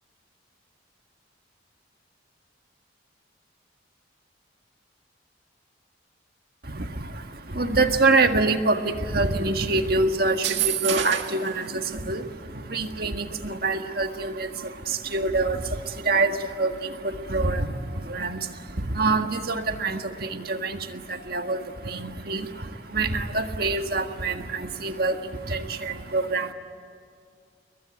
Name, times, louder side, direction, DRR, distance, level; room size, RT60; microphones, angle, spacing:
voice 1, 6.6-7.2 7.5-26.5, right 3 dB, 50° right, 6 dB, 1.7 m, -26 dB
sound 1, 10.3-11.5, right 10 dB, 70° right, 1.9 m, -27 dB
29.0 x 22.0 x 9.2 m, 2.3 s
head